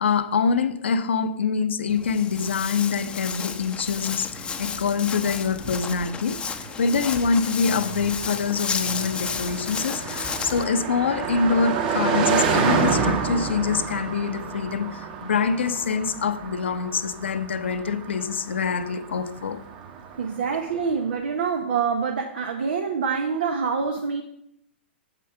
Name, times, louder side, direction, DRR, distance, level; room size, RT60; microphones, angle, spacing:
voice 1, 0.0-19.6, left 5 dB, 65° left, 0.9 m, -25 dB
Walk footsteps, 1.9-10.6, left 6 dB, 15° left, 0.8 m, -32 dB
Car passing by, 4.3-20.7, right 6 dB, 45° right, 2.0 m, -30 dB
voice 2, 20.2-24.2, right 5 dB, 60° right, 1.1 m, -26 dB
9.0 x 7.5 x 5.6 m
figure-of-eight pair, 110°, 6 cm